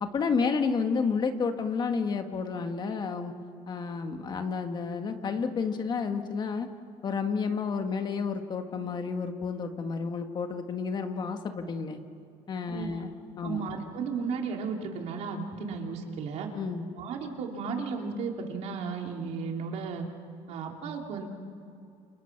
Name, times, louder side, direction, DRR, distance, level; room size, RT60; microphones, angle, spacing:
voice 1, 0.0-3.3 3.7-6.7 7.0-12.0 12.5-13.7 16.6-16.9, left 5 dB, 35° left, 6 dB, 1.8 m, -31 dB
voice 2, 12.7-13.0 13.4-16.5 16.9-20.1 20.5-21.3, right 5 dB, 65° right, 2 dB, 3.2 m, -34 dB
29.5 x 28.5 x 6.1 m, 2.5 s
cardioid pair, 140°, 12 cm